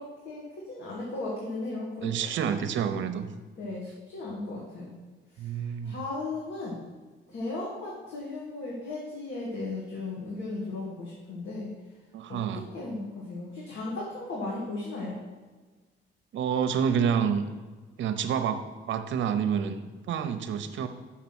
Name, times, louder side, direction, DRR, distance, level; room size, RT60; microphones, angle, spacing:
voice 1, 0.0-2.1 3.6-4.9 5.3-6.8 7.3-11.7 12.3-15.2, left 2 dB, 70° left, -4 dB, 1.8 m, -36 dB
voice 2, 2.0-3.3 5.4-6.0 12.1-12.7 16.3-17.5 18.0-20.9, right 7 dB, 70° right, 9 dB, 0.7 m, -28 dB
5.9 x 5.8 x 6.1 m, 1.3 s
cardioid pair, 90°, 20 cm